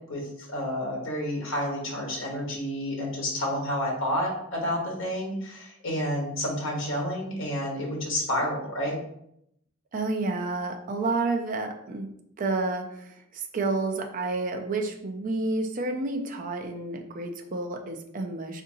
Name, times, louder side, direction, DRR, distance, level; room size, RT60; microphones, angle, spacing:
voice 1, 0.1-9.0, equal, 65° left, -2 dB, 1.0 m, -30 dB
voice 2, 9.9-12.1 12.4-18.6, right 3 dB, 40° right, 4 dB, 0.4 m, -30 dB
3.9 x 2.6 x 2.6 m, 0.74 s
head